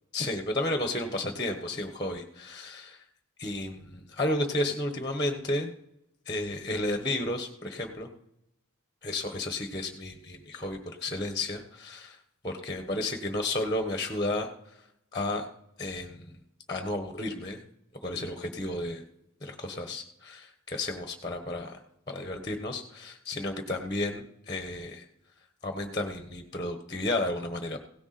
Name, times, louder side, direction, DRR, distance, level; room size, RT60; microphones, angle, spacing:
voice 1, 0.1-3.0 3.4-5.7 6.3-8.1 9.0-12.2 12.4-14.5 15.1-15.5 15.8-16.4 16.7-17.6 18.0-19.0 19.4-21.8 22.1-25.0 25.6-27.8, left 1 dB, 20° left, 5 dB, 1.2 m, -32 dB
17.0 x 7.1 x 4.2 m, 0.77 s
head